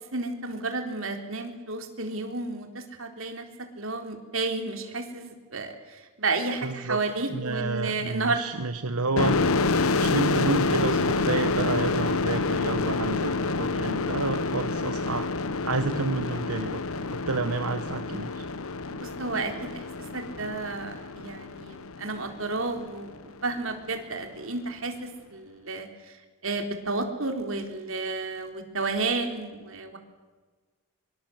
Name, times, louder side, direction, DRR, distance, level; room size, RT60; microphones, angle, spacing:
voice 1, 0.1-8.4 19.0-19.8 20.1-26.2 26.4-30.0, right 3 dB, 65° right, 5 dB, 3.8 m, -32 dB
voice 2, 6.6-7.0 7.3-9.4 9.7-15.3 15.6-16.8 17.1-18.5, right 3 dB, 85° right, 8 dB, 1.3 m, -30 dB
sound 1, 9.2-22.6, left 3 dB, 75° left, 1.1 m, -28 dB
24.5 x 24.0 x 7.9 m, 1.4 s
head